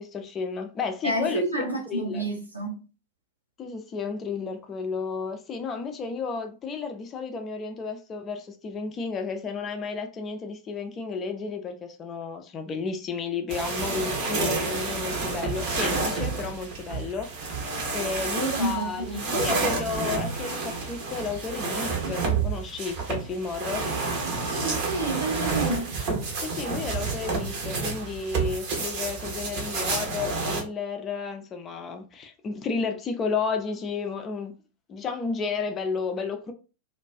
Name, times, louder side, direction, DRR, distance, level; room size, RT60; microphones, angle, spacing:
voice 1, 0.0-2.2 3.6-17.3 17.9-23.9 26.4-34.6 34.9-36.5, left 5 dB, 25° left, 0.5 m, -32 dB
voice 2, 1.0-2.8 18.3-19.5 24.4-25.9, right 2 dB, 85° right, 0.7 m, -29 dB
sound 1, 13.5-30.6, right 4 dB, 45° right, 0.7 m, -29 dB
2.3 x 2.2 x 2.5 m
figure-of-eight pair, 90°, 0 cm